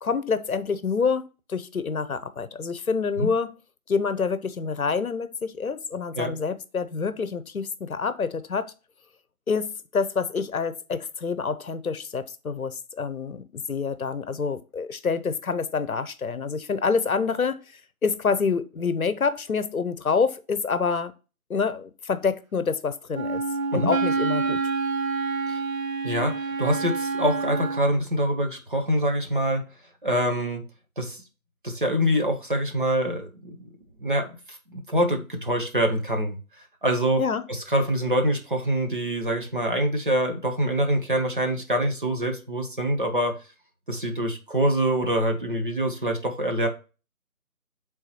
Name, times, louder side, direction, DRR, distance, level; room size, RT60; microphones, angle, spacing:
voice 1, 0.0-3.5 3.9-8.7 9.5-21.1 21.5-23.4 23.7-24.6 37.2-37.5, left 5 dB, 70° left, 0.8 m, -27 dB
Wind instrument woodwind instrument, 23.1-27.9, right 4 dB, 65° right, 0.9 m, -27 dB
voice 2, 26.0-29.6 30.0-30.6 31.0-31.2 31.6-33.6 34.0-34.3 34.7-36.4 36.8-37.2 37.5-43.3 43.9-46.7, equal, 35° right, 0.9 m, -25 dB
9.1 x 3.7 x 2.9 m
figure-of-eight pair, 165°, 44 cm